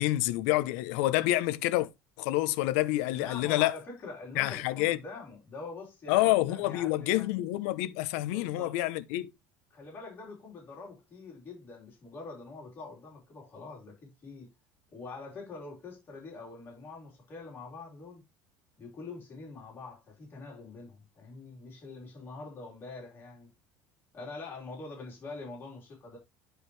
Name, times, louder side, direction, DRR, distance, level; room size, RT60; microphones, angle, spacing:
voice 1, 0.0-1.9 2.2-3.8 4.4-5.0 6.1-9.3, left 16 dB, 80° left, 0.7 m, -28 dB
voice 2, 3.1-7.3 8.3-8.8 9.7-14.5 14.9-18.2 18.8-23.5 24.1-26.2, left 3 dB, 30° left, 3.7 m, -45 dB
10.0 x 4.8 x 3.2 m
cardioid pair, 160°, 7 cm